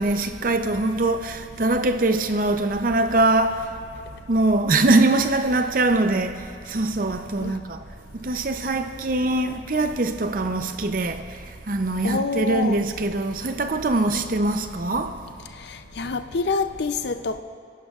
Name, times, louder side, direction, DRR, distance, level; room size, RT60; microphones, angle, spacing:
voice 1, 0.0-3.7 4.3-7.8 8.2-11.2 11.7-15.2, right 2 dB, 45° right, 0.6 m, -22 dB
voice 2, 12.0-12.8 14.1-14.3 15.7-17.4, left 4 dB, 60° left, 0.5 m, -27 dB
28.0 x 11.0 x 2.4 m
head